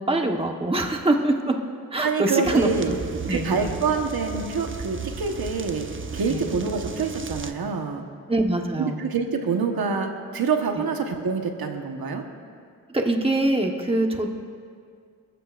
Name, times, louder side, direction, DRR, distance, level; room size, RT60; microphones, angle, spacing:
voice 1, 0.0-1.6 1.9-2.7 3.1-3.7 6.3-6.5 8.3-9.0 10.7-10.8 12.9-14.3, right 2 dB, 15° right, 2 dB, 1.2 m, -24 dB
voice 2, 2.0-2.9 3.3-5.9 6.1-8.0 8.8-12.2, right 5 dB, 85° right, 3 dB, 1.3 m, -26 dB
sound 1, 2.4-7.5, right 4 dB, 35° right, 0.9 m, -35 dB
27.5 x 14.5 x 2.5 m, 2.2 s
wide cardioid pair, 85°, 35 cm